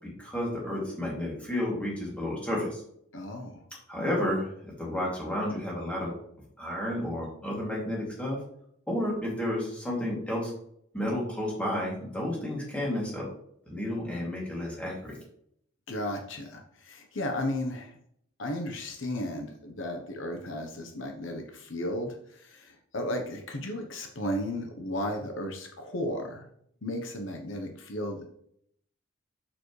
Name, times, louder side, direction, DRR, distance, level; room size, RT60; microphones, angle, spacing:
voice 1, 0.0-2.8 3.9-6.2 6.6-8.4 8.9-10.5 10.9-13.2 13.7-15.2, left 1 dB, 5° left, -4 dB, 2.7 m, -31 dB
voice 2, 3.1-3.6 15.9-17.9 18.4-26.5 26.8-28.4, left 1 dB, 65° left, 4 dB, 1.0 m, -34 dB
7.3 x 6.7 x 3.3 m, 0.68 s
head